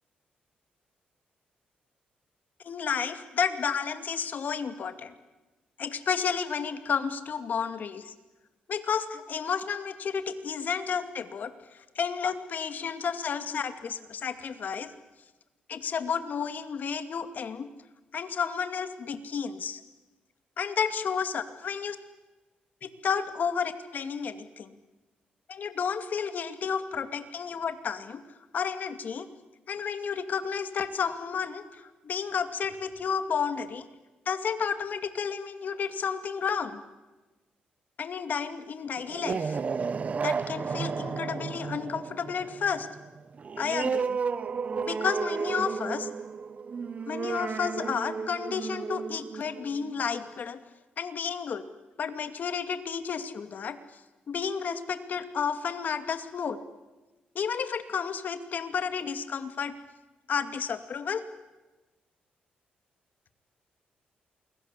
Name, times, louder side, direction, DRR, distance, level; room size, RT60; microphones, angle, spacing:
voice 1, 2.6-5.2 5.8-8.1 8.7-14.9 15.7-17.7 18.1-19.8 20.6-22.0 22.8-24.8 25.5-28.2 28.5-29.3 29.7-33.8 34.3-36.8 38.0-39.6 40.2-42.9 43.6-44.2 44.7-46.1 47.1-50.6 51.0-51.6 52.0-53.8 54.3-56.6 57.3-59.7 60.3-61.2, left 6 dB, 55° left, 9 dB, 2.4 m, -31 dB
sound 1, 39.0-50.2, right 5 dB, 45° right, 1.0 m, -33 dB
28.5 x 22.5 x 8.3 m, 1.1 s
cardioid pair, 85°, 3 cm